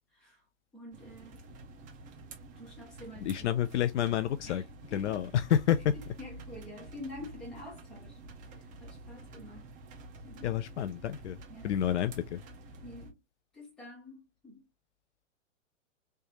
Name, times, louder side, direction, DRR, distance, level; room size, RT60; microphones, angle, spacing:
voice 1, 0.1-0.4 0.7-1.4 2.6-3.4 4.5-4.6 4.9-5.3 5.9-8.2 8.5-9.7 10.2-10.5 11.5-12.1 12.8-13.2 13.5-14.6, left 2 dB, ahead, 0.3 m, -48 dB
sound 1, 0.9-13.1, right 2 dB, 20° right, 0.8 m, -49 dB
voice 2, 3.2-4.6 4.9-6.0 10.4-11.4 11.6-12.4, left 10 dB, 60° left, 0.5 m, -29 dB
3.3 x 3.3 x 2.9 m
hypercardioid pair, 140°, 39 cm